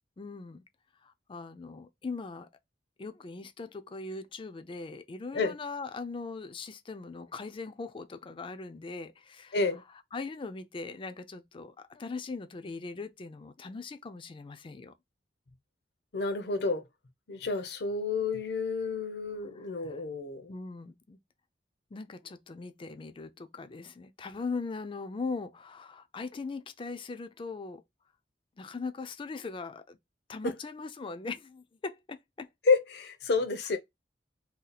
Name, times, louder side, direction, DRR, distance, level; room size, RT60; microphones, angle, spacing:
voice 1, 0.2-0.6 1.0-2.5 3.0-9.6 10.1-14.9 19.6-20.0 20.5-21.2 21.9-27.8 28.6-30.0 30.3-32.5, left 4 dB, 30° left, 0.4 m, -40 dB
voice 2, 16.1-16.8 17.3-20.5 30.4-30.5 32.7-33.8, left 4 dB, 65° left, 0.7 m, -29 dB
2.7 x 2.3 x 3.9 m
head